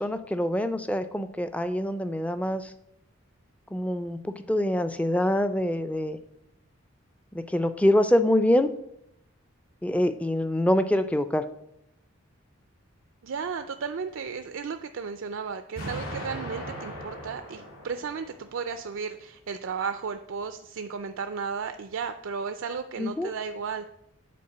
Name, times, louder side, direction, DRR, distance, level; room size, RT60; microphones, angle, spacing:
voice 1, 0.0-2.7 3.7-6.2 7.3-8.7 9.8-11.4 23.0-23.3, left 1 dB, 5° left, 10 dB, 0.4 m, -25 dB
voice 2, 13.2-23.9, right 5 dB, 65° right, 9 dB, 0.4 m, -34 dB
Explosion, 15.8-18.7, equal, 75° left, 3.2 m, -38 dB
8.5 x 4.5 x 6.6 m, 0.79 s
head